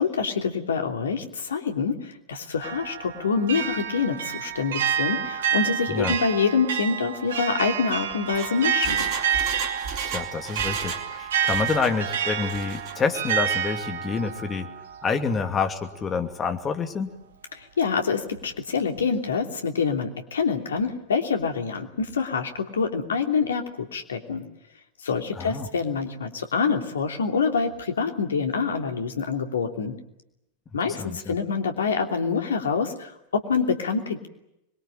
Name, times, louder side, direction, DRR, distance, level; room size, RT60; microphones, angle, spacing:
voice 1, 0.0-9.1 17.5-24.4 25.0-29.9 30.7-34.3, left 5 dB, 65° left, 5 dB, 3.0 m, -26 dB
sound 1, 2.6-15.6, right 8 dB, 60° right, 1.5 m, -29 dB
Engine, 8.1-11.1 11.3-12.0 12.4-12.9 13.3-13.4, right 5 dB, 40° right, 4.3 m, -35 dB
voice 2, 10.1-14.7 15.0-17.1 25.3-25.7 30.9-31.3, left 5 dB, 20° left, 6 dB, 2.7 m, -28 dB
26.0 x 22.0 x 9.1 m, 0.84 s
figure-of-eight pair, 90°, 0 cm